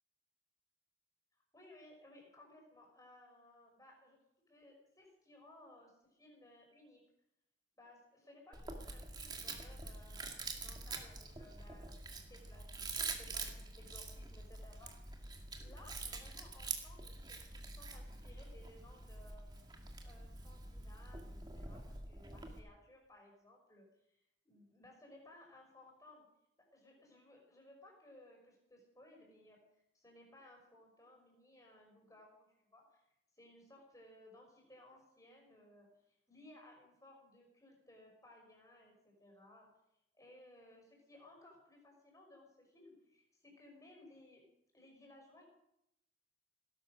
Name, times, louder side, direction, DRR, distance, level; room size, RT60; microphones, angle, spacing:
voice 1, 1.5-4.2 4.5-7.0 7.7-15.3 15.6-19.5 20.0-24.2 24.4-26.2 26.6-29.6 29.9-39.7 40.1-44.4 44.7-45.5, left 1 dB, 20° left, 0 dB, 5.8 m, -61 dB
Chewing mastication, 8.5-22.6, right 3 dB, 25° right, 2.3 m, -46 dB
18.0 x 11.5 x 6.6 m, 0.81 s
head